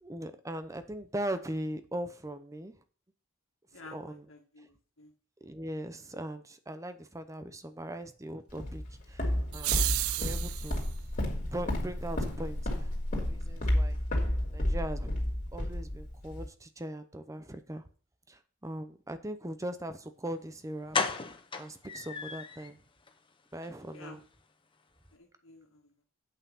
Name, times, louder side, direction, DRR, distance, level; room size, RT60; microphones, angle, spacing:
voice 1, 0.0-2.7 3.9-4.2 5.4-9.3 9.5-9.8 10.2-10.9 11.5-14.0 14.5-15.1 15.5-17.8 18.3-21.0 21.6-22.8 23.5-24.2, right 1 dB, 15° right, 10 dB, 0.7 m, -40 dB
voice 2, 3.7-5.1 23.9-24.2 25.1-25.9, left 3 dB, 70° left, 2 dB, 2.1 m, -52 dB
Walk footsteps, 8.6-16.5, left 1 dB, 40° left, 2.6 m, -31 dB
sound 1, 9.5-10.9, right 18 dB, 85° right, 0.3 m, -32 dB
sound 2, 20.3-20.4 20.9-22.7 23.1-23.2 23.5-23.7 23.9-24.0, left 4 dB, 25° left, 0.8 m, -34 dB
8.4 x 5.7 x 5.6 m, 0.40 s
head